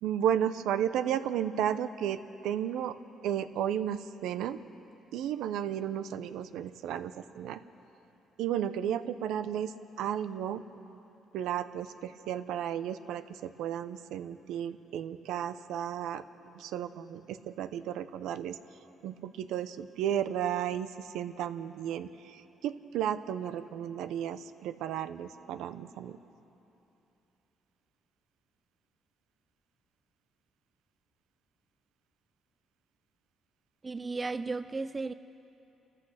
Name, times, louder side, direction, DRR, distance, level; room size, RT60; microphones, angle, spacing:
voice 1, 0.0-2.2 2.4-2.9 3.2-4.6 5.1-7.6 8.4-11.0 11.3-18.6 19.0-26.2, right 10 dB, 90° right, 0.7 m, -33 dB
voice 2, 33.8-35.1, right 3 dB, 25° right, 0.5 m, -34 dB
28.0 x 14.5 x 6.5 m
cardioid pair, 90°, 0 cm